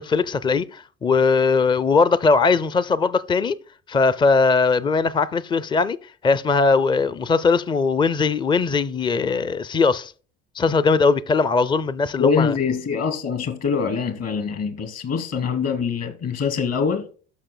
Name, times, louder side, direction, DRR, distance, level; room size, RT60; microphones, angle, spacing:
voice 1, 0.0-3.6 3.9-6.0 6.2-10.1 10.6-12.5, left 4 dB, 15° left, 0.5 m, -20 dB
voice 2, 12.2-17.1, left 6 dB, 50° left, 2.8 m, -24 dB
13.5 x 5.7 x 2.2 m
hypercardioid pair, 75°, 32 cm